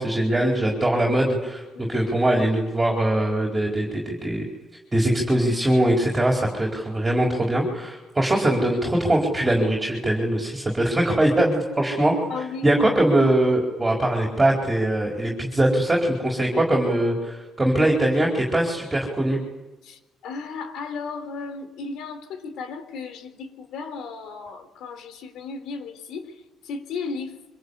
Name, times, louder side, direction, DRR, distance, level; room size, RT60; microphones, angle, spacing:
voice 1, 0.0-1.6 1.9-4.4 4.9-12.1 12.6-19.4, right 1 dB, 10° right, -1 dB, 4.5 m, -22 dB
voice 2, 1.7-2.1 12.3-12.7 19.8-27.5, left 4 dB, 85° left, 10 dB, 3.9 m, -35 dB
26.0 x 25.5 x 8.4 m, 1.1 s
cardioid pair, 155°, 0 cm